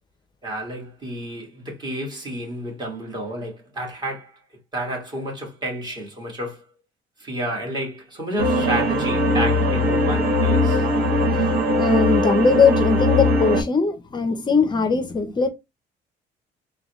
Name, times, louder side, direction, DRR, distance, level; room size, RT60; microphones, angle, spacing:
voice 1, 0.4-4.3 4.7-6.6 7.2-10.8, right 1 dB, 25° right, 1.7 m, -30 dB
sound 1, 8.4-13.6, left 1 dB, 65° right, 1.4 m, -20 dB
voice 2, 11.8-15.5, left 5 dB, 25° left, 0.6 m, -20 dB
3.7 x 2.3 x 3.0 m
cardioid pair, 110°, 17 cm